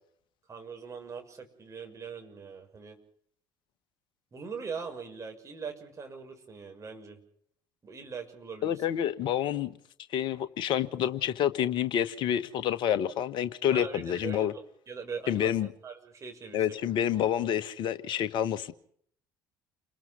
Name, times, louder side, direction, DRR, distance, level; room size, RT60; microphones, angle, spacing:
voice 1, 0.5-3.0 4.3-7.2 7.8-8.8 13.7-15.5 15.8-16.8, right 5 dB, 30° right, 6.3 m, -41 dB
voice 2, 8.6-9.7 10.1-14.5 15.3-15.7 16.5-18.7, left 10 dB, 50° left, 1.5 m, -28 dB
29.0 x 21.0 x 5.4 m
figure-of-eight pair, 55°, 11 cm